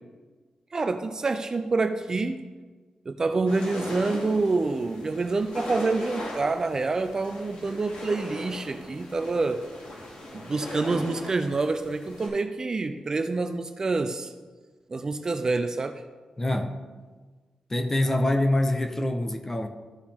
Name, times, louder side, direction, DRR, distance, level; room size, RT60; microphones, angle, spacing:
voice 1, 0.7-2.4 3.1-9.6 10.3-14.3 14.9-16.0, right 3 dB, 30° right, 8 dB, 0.4 m, -27 dB
sound 1, 3.4-12.3, left 1 dB, 75° left, 2.7 m, -39 dB
voice 2, 16.4-16.7 17.7-19.7, left 1 dB, 20° left, 6 dB, 0.7 m, -25 dB
14.5 x 4.9 x 3.6 m, 1.4 s
wide cardioid pair, 145°, 2 cm